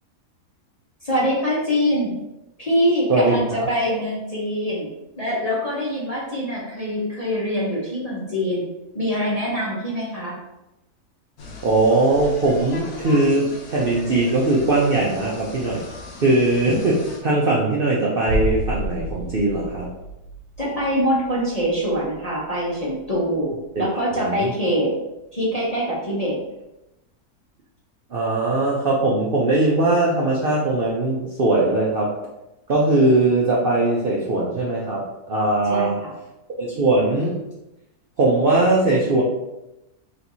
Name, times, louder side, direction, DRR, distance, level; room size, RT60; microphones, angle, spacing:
voice 1, 1.0-2.2 2.6-8.6 8.9-10.4 20.6-23.5 23.7-24.9 25.3-26.4 35.7-36.1, equal, 30° left, -7 dB, 0.7 m, -24 dB
voice 2, 3.1-3.7 11.6-15.8 16.2-19.9 24.1-24.5 28.1-32.1 32.7-36.0 36.6-37.4 38.2-39.2, right 2 dB, 60° right, -4 dB, 0.6 m, -20 dB
sound 1, 11.4-17.2, left 2 dB, 65° left, 1.2 m, -38 dB
sound 2, 18.3-24.0 24.3-24.4, equal, 90° right, 1.2 m, -31 dB
4.4 x 3.1 x 2.6 m, 0.94 s
omnidirectional pair, 1.7 m